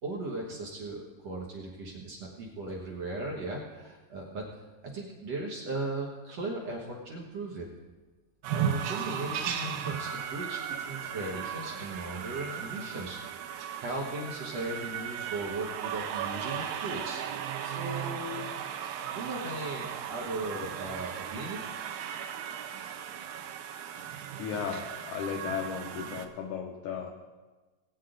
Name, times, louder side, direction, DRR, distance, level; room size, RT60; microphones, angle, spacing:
voice 1, 0.0-4.4 4.9-7.7 8.5-18.5 19.1-21.6, right 2 dB, 55° right, -3 dB, 1.9 m, -37 dB
sound 1, 8.4-26.3, right 8 dB, 75° right, 2.3 m, -36 dB
voice 2, 24.4-27.1, left 7 dB, 90° left, 2 dB, 1.7 m, -35 dB
19.5 x 8.5 x 3.9 m, 1.2 s
omnidirectional pair, 4.7 m